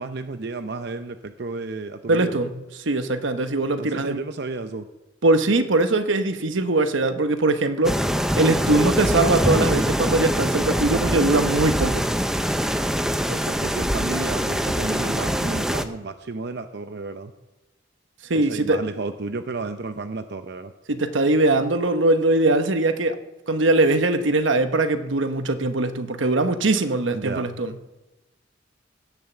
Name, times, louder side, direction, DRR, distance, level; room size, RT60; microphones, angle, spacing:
voice 1, 0.0-2.4 3.8-4.9 13.3-17.3 18.3-20.7 27.1-27.5, right 3 dB, 60° right, 9 dB, 0.6 m, -32 dB
voice 2, 2.1-2.5 2.8-4.2 5.2-8.0 8.4-12.0 18.3-18.8 20.9-23.2 23.5-27.7, right 2 dB, 85° right, 9 dB, 1.0 m, -21 dB
sound 1, 7.8-15.8, equal, 5° right, 0.6 m, -23 dB
17.0 x 7.3 x 7.2 m, 1.0 s
head